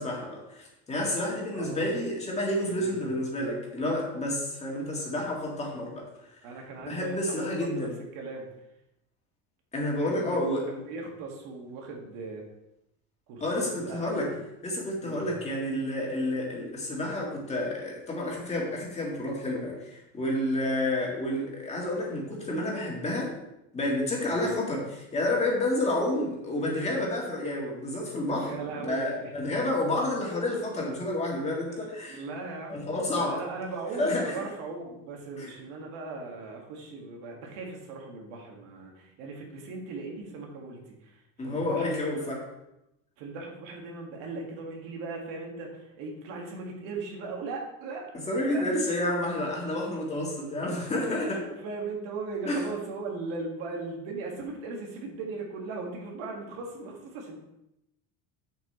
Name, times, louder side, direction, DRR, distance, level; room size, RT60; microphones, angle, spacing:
voice 1, 0.0-6.1 6.3-6.4 6.9-8.0 9.7-10.6 13.4-14.3 14.6-23.3 23.7-32.2 32.7-33.4 34.0-34.3 35.4-35.5 41.4-42.4 48.3-51.4 52.5-52.6, left 1 dB, 20° left, -2 dB, 1.9 m, -30 dB
voice 2, 1.5-1.8 2.7-3.1 6.4-7.5 7.7-8.5 10.0-12.4 13.3-14.4 15.0-15.4 24.2-24.5 28.4-29.5 31.7-42.4 43.2-48.1 48.5-48.7 51.3-57.4, right 3 dB, 75° right, 0 dB, 2.3 m, -38 dB
7.8 x 7.7 x 3.3 m, 0.87 s
cardioid pair, 160°, 36 cm